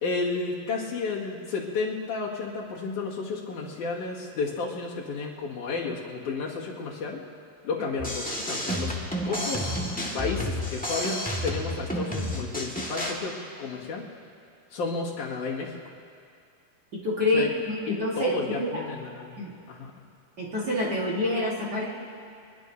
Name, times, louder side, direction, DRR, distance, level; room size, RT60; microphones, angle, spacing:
voice 1, 0.0-7.2 7.6-8.9 9.3-9.7 10.1-13.3 13.6-14.0 14.7-15.9 17.3-17.5 17.9-19.3 19.7-19.9, left 4 dB, 80° left, -4 dB, 3.4 m, -32 dB
sound 1, 8.0-13.1, equal, 5° left, 0.7 m, -31 dB
voice 2, 16.9-18.3 18.6-18.7 19.4-19.5 20.4-21.8, left 2 dB, 40° right, -5 dB, 1.8 m, -27 dB
24.5 x 21.0 x 2.7 m, 2.4 s
omnidirectional pair, 3.5 m